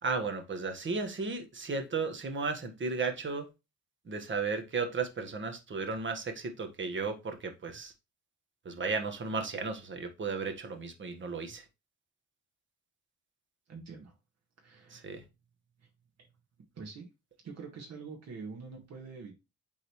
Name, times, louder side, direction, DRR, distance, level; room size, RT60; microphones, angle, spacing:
voice 1, 0.0-3.5 4.0-7.9 8.6-11.6 14.9-15.2, right 4 dB, 40° right, 1.5 m, -34 dB
voice 2, 13.7-14.1 14.6-15.1 15.8-15.9 16.7-17.1 17.4-19.3, right 4 dB, 60° right, 1.8 m, -45 dB
8.0 x 3.9 x 3.1 m
cardioid pair, 90°, 30 cm